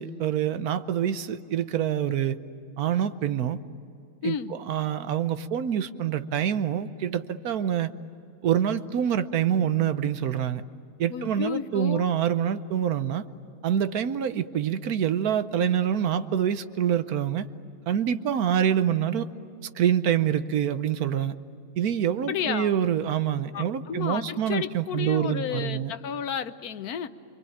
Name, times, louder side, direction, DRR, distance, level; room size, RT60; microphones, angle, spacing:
voice 1, 0.0-2.4 2.8-3.6 4.2-7.9 8.4-10.6 11.0-13.2 13.6-17.5 17.9-19.3 19.8-21.3 21.8-25.9, right 9 dB, 75° right, 12 dB, 1.3 m, -26 dB
voice 2, 4.2-4.6 11.1-12.1 22.3-22.8 23.5-27.1, left 8 dB, 80° left, 11 dB, 1.4 m, -32 dB
27.0 x 24.5 x 8.8 m, 2.7 s
omnidirectional pair, 1.6 m